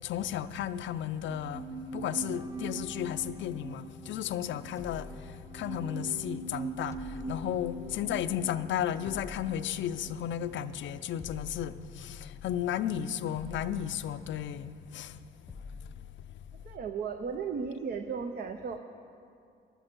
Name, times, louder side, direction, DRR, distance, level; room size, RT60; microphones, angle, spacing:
voice 1, 0.0-15.2 15.5-15.9, left 10 dB, 70° left, 0.5 m, -34 dB
sound 1, 1.2-10.6 10.8-10.9, right 3 dB, 20° right, 1.0 m, -42 dB
sound 2, 4.8-6.1 6.9-8.5 9.0-10.5 11.2-12.8 13.3-14.7 15.5-17.1, left 5 dB, 15° left, 0.8 m, -48 dB
voice 2, 16.6-18.8, right 5 dB, 50° right, 0.7 m, -35 dB
15.0 x 11.0 x 4.5 m
cardioid pair, 90°, 20 cm